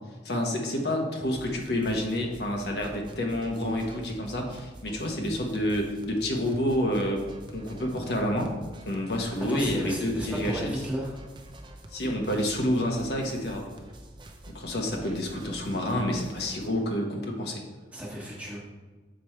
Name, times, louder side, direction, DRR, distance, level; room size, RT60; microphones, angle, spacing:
voice 1, 0.2-7.2 7.5-8.5 8.9-10.7 11.9-13.6 14.5-17.6, left 1 dB, 70° left, 1 dB, 1.1 m, -28 dB
sound 1, 1.2-16.7, right 1 dB, 25° right, 0.6 m, -47 dB
voice 2, 9.2-11.2 15.1-15.2 17.9-18.6, equal, 5° right, -5 dB, 1.4 m, -34 dB
6.8 x 5.0 x 4.4 m, 1.3 s
head